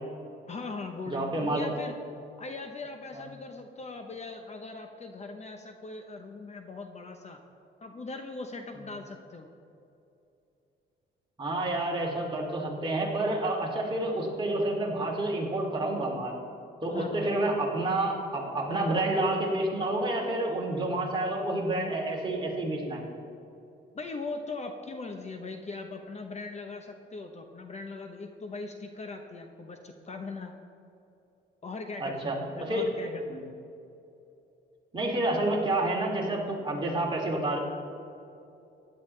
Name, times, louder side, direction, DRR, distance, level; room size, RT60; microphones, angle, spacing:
voice 1, 0.5-2.0 2.4-7.4 7.8-9.5 16.9-17.4 23.9-30.6 31.6-33.4, left 3 dB, 35° left, 5 dB, 0.9 m, -40 dB
voice 2, 1.1-1.7 3.1-3.2 11.4-16.4 16.8-23.0 32.0-32.4 32.7-32.9 33.3-33.4 34.9-37.6, right 2 dB, 25° right, -2 dB, 2.9 m, -29 dB
15.5 x 11.0 x 3.3 m, 2.8 s
cardioid pair, 90°, 20 cm